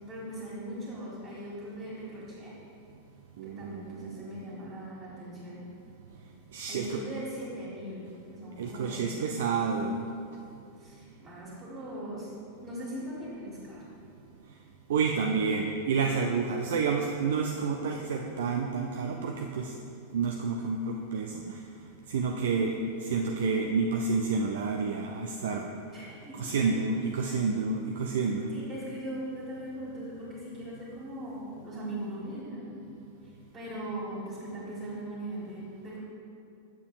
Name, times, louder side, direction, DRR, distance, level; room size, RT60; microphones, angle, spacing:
voice 1, 0.1-2.5 3.4-5.7 6.7-9.2 10.8-12.3 12.6-13.9 15.1-15.3 25.9-26.5 28.5-32.8 33.2-36.0, right 1 dB, 25° right, -9 dB, 1.6 m, -40 dB
voice 2, 3.4-4.3 6.5-7.0 8.6-10.0 14.9-19.7 20.1-21.6 22.1-22.7 23.0-25.7 26.4-28.5, right 5 dB, 60° right, 2 dB, 0.4 m, -29 dB
8.3 x 6.8 x 2.4 m, 2.5 s
figure-of-eight pair, 90°, 0 cm